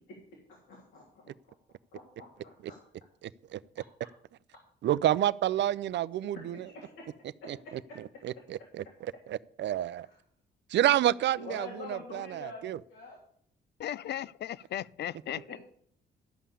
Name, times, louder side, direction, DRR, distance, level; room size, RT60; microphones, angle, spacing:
voice 1, 0.7-1.5 1.9-2.8 6.5-7.1 7.4-7.5 8.1-8.2 11.4-13.2 15.5-15.6, left 3 dB, 90° left, 3.4 m, -46 dB
voice 2, 3.2-3.6 4.8-6.7 7.5-7.6 8.2-10.1 10.7-12.8, right 12 dB, 65° right, 0.5 m, -29 dB
voice 3, 13.8-15.6, left 11 dB, 60° left, 0.5 m, -36 dB
13.0 x 5.6 x 8.4 m
cardioid pair, 90°, 20 cm